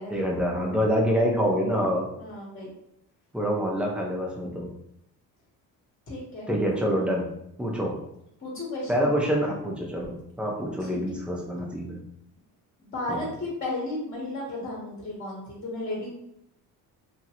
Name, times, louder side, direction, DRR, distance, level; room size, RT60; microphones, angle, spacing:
voice 1, 0.1-2.1 3.3-4.7 6.5-7.3 7.6-8.0 8.9-12.0 13.1-13.2, equal, 5° right, -2 dB, 0.7 m, -26 dB
voice 2, 2.2-2.7 6.1-6.5 8.4-9.0 10.8-11.0 12.8-16.1, left 2 dB, 35° left, -4 dB, 1.2 m, -34 dB
2.9 x 2.6 x 2.9 m, 0.78 s
cardioid pair, 100°, 38 cm